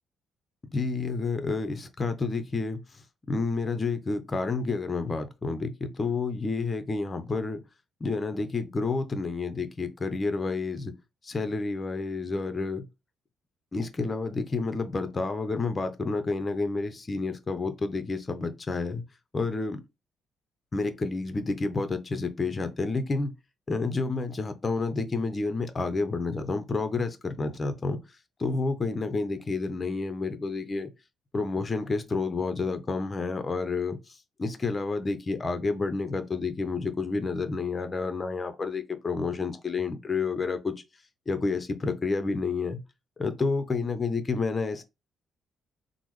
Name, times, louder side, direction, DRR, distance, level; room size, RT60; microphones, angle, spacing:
voice 1, 0.7-2.8 3.3-7.6 8.0-10.9 11.2-12.9 13.7-19.0 19.3-19.8 20.7-23.3 23.7-28.0 28.4-30.9 31.3-34.0 34.4-40.7 41.3-42.8 43.2-44.8, left 3 dB, 30° left, 0.6 m, -29 dB
3.4 x 2.0 x 3.1 m
cardioid pair, 90°, 0 cm